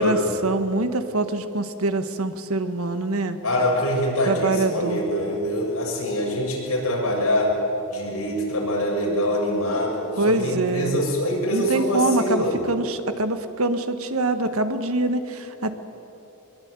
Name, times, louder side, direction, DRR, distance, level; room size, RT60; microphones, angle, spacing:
voice 1, 0.0-3.4 4.3-5.0 10.2-11.0 11.5-15.7, right 2 dB, 75° right, 9 dB, 1.6 m, -24 dB
voice 2, 3.4-7.5 7.9-12.6, equal, 80° left, -2 dB, 7.3 m, -24 dB
23.0 x 21.5 x 9.7 m, 2.9 s
head